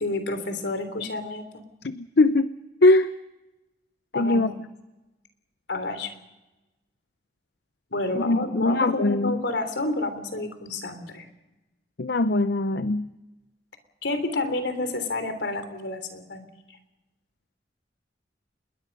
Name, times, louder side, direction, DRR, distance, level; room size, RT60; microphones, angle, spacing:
voice 1, 0.0-1.4 4.1-4.4 5.7-6.1 7.9-11.2 14.0-16.5, left 2 dB, 90° left, 8 dB, 3.4 m, -29 dB
voice 2, 1.8-2.5 2.8-3.1 4.1-4.5 8.1-9.4 12.0-13.1, left 2 dB, 70° left, 12 dB, 0.7 m, -21 dB
27.0 x 21.5 x 5.4 m, 1.0 s
head